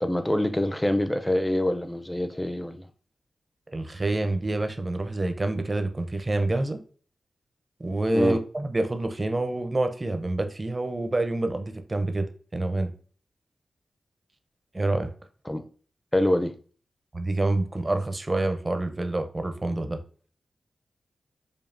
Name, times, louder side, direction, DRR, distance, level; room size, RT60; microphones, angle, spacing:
voice 1, 0.0-2.9 8.1-8.4 15.5-15.7 16.1-16.6, left 1 dB, 15° left, 0.5 m, -25 dB
voice 2, 3.7-6.8 7.8-12.9 14.7-15.1 17.1-20.0, right 2 dB, 35° right, 0.6 m, -27 dB
5.2 x 2.4 x 2.5 m
cardioid pair, 45°, 0 cm